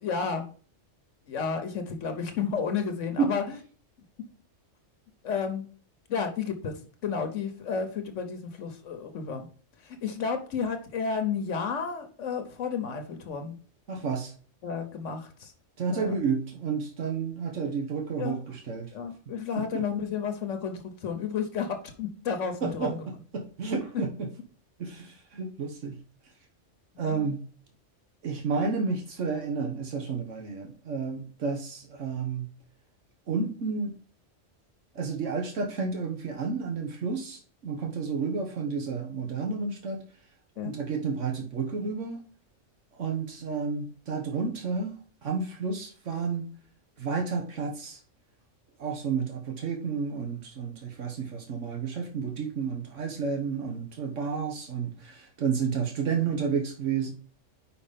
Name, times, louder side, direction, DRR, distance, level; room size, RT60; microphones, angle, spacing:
voice 1, 0.0-0.4 1.3-3.6 5.2-5.6 6.1-9.5 9.8-13.6 14.6-15.5 15.9-16.1 18.2-18.4 18.9-23.0 27.0-27.3 40.6-40.7, left 6 dB, 75° left, 6 dB, 1.2 m, -32 dB
voice 2, 13.9-14.3 15.8-18.9 19.6-19.9 22.6-22.9 23.3-24.3 24.8-25.9 27.0-27.4 28.2-32.5 33.3-33.9 34.9-40.0 40.6-42.2 43.0-44.9 45.2-46.5 47.0-48.0 48.8-57.1, right 5 dB, 75° right, 3 dB, 1.4 m, -31 dB
5.3 x 4.9 x 5.0 m, 0.42 s
omnidirectional pair, 1.3 m